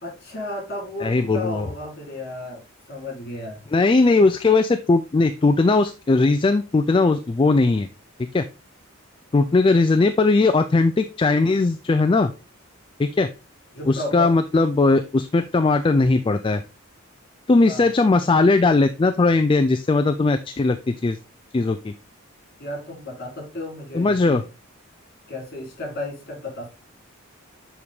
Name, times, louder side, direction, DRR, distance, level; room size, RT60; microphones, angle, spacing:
voice 1, 0.0-2.6 2.9-3.6 13.7-14.3 17.7-17.9 22.6-24.4 25.3-26.7, left 1 dB, 45° left, 0 dB, 3.5 m, -33 dB
voice 2, 1.0-1.7 3.7-7.9 8.3-8.5 9.3-12.3 13.0-13.3 13.9-16.6 17.5-21.2 21.5-21.9 23.9-24.4, left 3 dB, 25° left, 9 dB, 0.3 m, -19 dB
7.1 x 4.8 x 3.5 m, 0.30 s
head